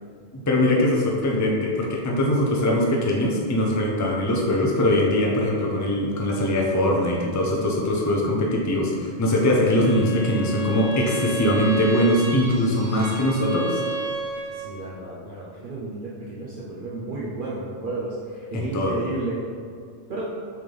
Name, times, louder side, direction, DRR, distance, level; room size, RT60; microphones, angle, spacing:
voice 1, 0.3-13.8 18.5-19.0, left 1 dB, 20° left, -2 dB, 0.6 m, -22 dB
Bowed string instrument, 9.6-14.8, right 3 dB, 90° right, 1.7 m, -32 dB
voice 2, 14.5-19.4 20.1-20.3, right 2 dB, 50° right, -7 dB, 1.0 m, -32 dB
7.5 x 4.0 x 3.4 m, 2.2 s
omnidirectional pair, 1.2 m